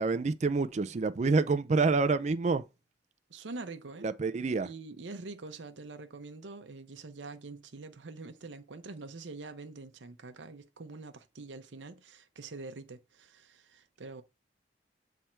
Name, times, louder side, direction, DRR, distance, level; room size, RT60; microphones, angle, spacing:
voice 1, 0.0-2.6 4.0-4.7, right 4 dB, 40° right, 0.4 m, -27 dB
voice 2, 3.3-4.1 4.6-14.2, right 3 dB, 85° right, 0.7 m, -45 dB
7.4 x 3.4 x 4.3 m
head